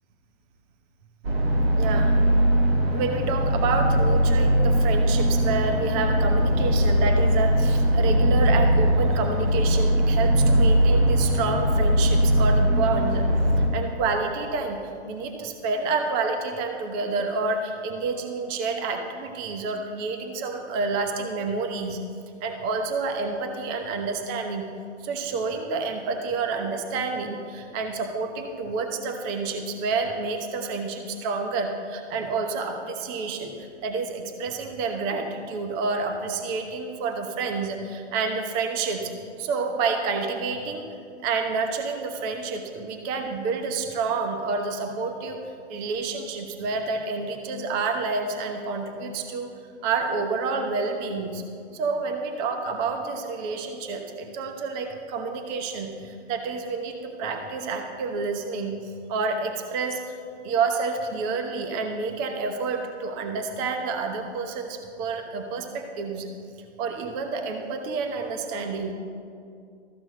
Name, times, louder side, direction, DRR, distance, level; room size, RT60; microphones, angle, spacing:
sound 1, 1.2-13.7, equal, 55° right, 2.2 m, -20 dB
voice 1, 1.8-2.1 2.9-13.3 13.6-14.8 15.1-22.0 22.4-24.6 25.0-39.1 39.4-40.8 41.2-45.4 45.7-49.5 49.8-51.4 51.7-60.2 60.4-66.3 66.8-68.9, right 4 dB, 25° right, 4 dB, 1.0 m, -29 dB
14.0 x 6.1 x 7.6 m, 2.3 s
hypercardioid pair, 145°, 35 cm